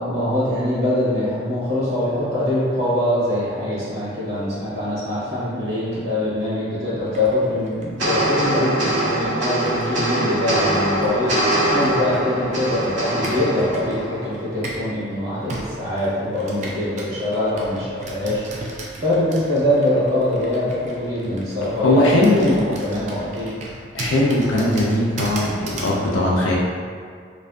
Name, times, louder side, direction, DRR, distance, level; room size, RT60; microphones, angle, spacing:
voice 1, 0.0-18.7 19.0-23.5, left 1 dB, 55° right, -10 dB, 0.9 m, -23 dB
Computer keyboard, 7.1-14.9 15.5-26.0, right 2 dB, 40° right, 0.3 m, -37 dB
sound 1, 8.0-14.6, right 1 dB, 80° right, 1.0 m, -23 dB
voice 2, 21.8-22.5 23.9-26.6, left 1 dB, 85° left, -4 dB, 0.4 m, -19 dB
2.5 x 2.4 x 2.2 m, 2.1 s
head